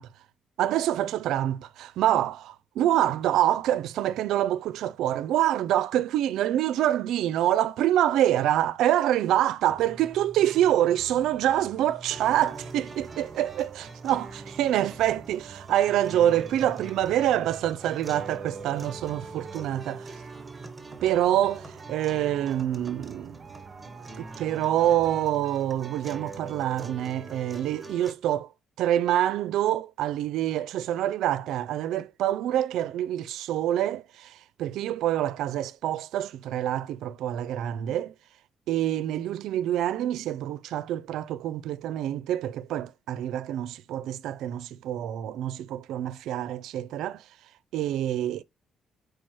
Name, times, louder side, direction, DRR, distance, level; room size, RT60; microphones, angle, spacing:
voice 1, 0.6-20.2 21.0-23.4 24.2-28.5 28.8-38.1 38.7-47.2 47.7-48.4, right 12 dB, 85° right, 0.4 m, -26 dB
sound 1, 9.7-25.3, right 4 dB, 40° right, 0.7 m, -46 dB
sound 2, 12.1-28.1, right 3 dB, 20° right, 1.4 m, -43 dB
4.8 x 4.6 x 6.0 m
cardioid pair, 90°, 0 cm